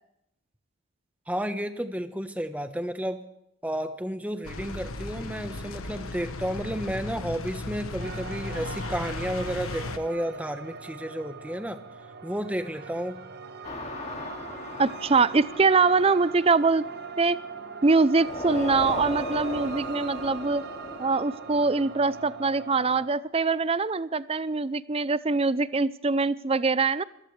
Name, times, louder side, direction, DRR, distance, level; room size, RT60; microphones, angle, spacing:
voice 1, 1.3-3.2 3.6-11.8 12.2-13.2, equal, 5° right, 9 dB, 1.0 m, -32 dB
sound 1, 4.4-10.0, left 2 dB, 85° left, 1.4 m, -36 dB
sound 2, 8.0-23.1, right 6 dB, 50° right, 1.2 m, -41 dB
sound 3, 13.6-17.6 18.2-22.3, left 2 dB, 30° left, 2.3 m, -38 dB
voice 2, 14.8-16.8 17.2-17.4 17.8-20.6 21.0-27.0, right 4 dB, 30° right, 17 dB, 0.5 m, -23 dB
27.0 x 15.0 x 3.3 m, 0.79 s
head